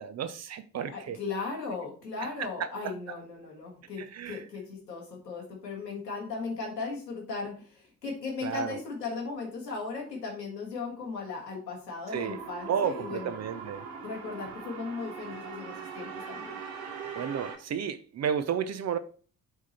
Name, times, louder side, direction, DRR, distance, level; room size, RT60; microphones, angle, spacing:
voice 1, 0.0-1.2 2.4-2.9 4.0-4.4 8.4-8.8 12.1-12.4 12.7-13.8 17.1-19.0, right 7 dB, 35° right, 0.6 m, -32 dB
voice 2, 0.9-13.3 14.0-16.6, left 4 dB, 85° left, 1.6 m, -37 dB
sound 1, 12.1-17.6, right 6 dB, 60° right, 1.1 m, -41 dB
7.2 x 3.7 x 4.2 m
figure-of-eight pair, 45°, 48 cm